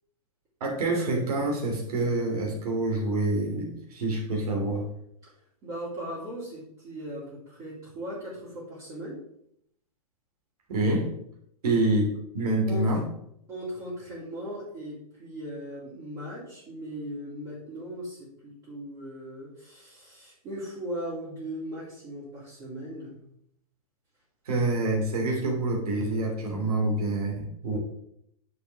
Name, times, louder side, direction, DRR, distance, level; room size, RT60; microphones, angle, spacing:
voice 1, 0.6-4.9 10.7-11.1 11.6-13.1 24.4-27.8, right 2 dB, 80° right, 0 dB, 2.9 m, -27 dB
voice 2, 5.6-9.2 12.7-12.8 13.5-23.2 27.7-27.8, equal, 20° right, -9 dB, 2.8 m, -38 dB
9.3 x 6.4 x 3.5 m, 0.74 s
hypercardioid pair, 170°, 19 cm